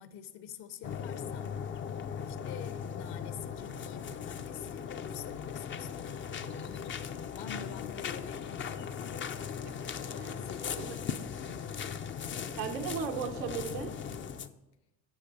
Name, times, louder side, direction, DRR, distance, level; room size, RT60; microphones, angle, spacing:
voice 1, 0.0-1.6 2.3-7.1 7.3-9.2 10.1-11.2 11.5-12.1, left 8 dB, 60° left, 11 dB, 1.1 m, -47 dB
sound 1, 0.8-14.5, left 7 dB, 25° left, 0.5 m, -38 dB
voice 2, 9.8-10.4 10.7-10.9 12.6-13.9, right 6 dB, 90° right, 4 dB, 1.0 m, -37 dB
10.5 x 6.6 x 5.3 m, 1.0 s
hypercardioid pair, 75°, 47 cm